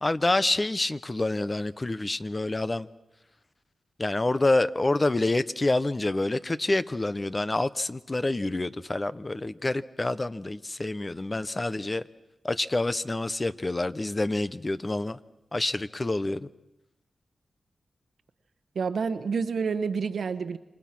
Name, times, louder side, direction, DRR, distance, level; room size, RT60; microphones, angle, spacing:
voice 1, 0.0-2.9 4.0-12.0 12.4-15.2 15.5-16.5, left 2 dB, 30° left, 15 dB, 0.8 m, -27 dB
voice 2, 18.7-20.6, right 5 dB, 80° right, 12 dB, 1.1 m, -28 dB
28.5 x 24.5 x 6.0 m, 0.94 s
cardioid pair, 75°, 0 cm